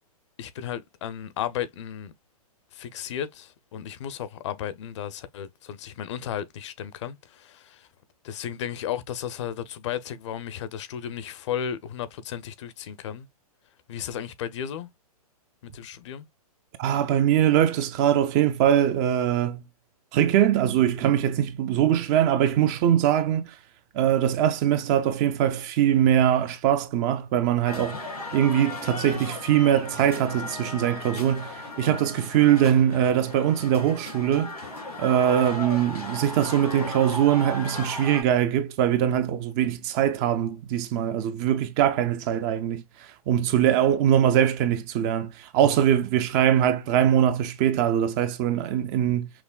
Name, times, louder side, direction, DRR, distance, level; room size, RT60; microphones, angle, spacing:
voice 1, 0.4-2.1 2.7-7.9 8.2-13.3 13.9-14.9 15.6-16.3, left 9 dB, 50° left, 0.6 m, -34 dB
voice 2, 16.8-19.6 20.1-23.5 23.9-28.0 28.3-34.5 35.0-42.8 43.3-49.3, right 10 dB, 30° right, 0.4 m, -22 dB
sound 1, 27.6-38.2, left 1 dB, 90° left, 2.4 m, -36 dB
5.8 x 2.1 x 2.2 m
hypercardioid pair, 125°, 19 cm